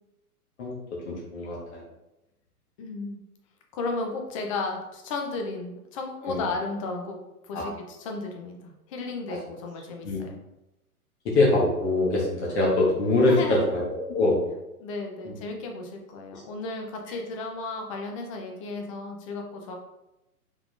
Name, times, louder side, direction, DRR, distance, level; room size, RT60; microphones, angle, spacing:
voice 1, 1.0-1.8 6.3-6.4 7.5-7.6 10.0-10.2 11.2-14.4 15.2-15.3, left 2 dB, 45° left, -3 dB, 1.3 m, -23 dB
voice 2, 2.8-3.2 3.7-7.2 7.4-10.4 13.2-13.7 14.8-19.8, left 3 dB, 25° left, 2 dB, 0.4 m, -34 dB
4.8 x 3.7 x 2.4 m, 0.94 s
hypercardioid pair, 120°, 46 cm